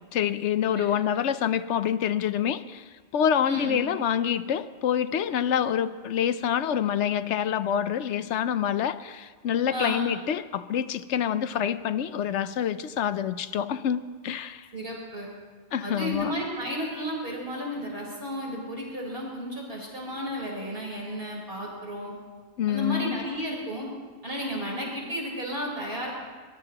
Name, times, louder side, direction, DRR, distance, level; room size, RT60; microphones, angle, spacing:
voice 1, 0.1-2.8 3.1-14.7 15.7-16.3 22.6-23.2, left 9 dB, 75° left, 13 dB, 1.0 m, -27 dB
voice 2, 3.4-3.8 9.7-10.0 14.7-15.3 15.8-22.1 22.7-23.9 24.2-26.1, equal, 50° right, -3 dB, 4.4 m, -33 dB
24.5 x 20.0 x 2.9 m, 1.5 s
omnidirectional pair, 1.2 m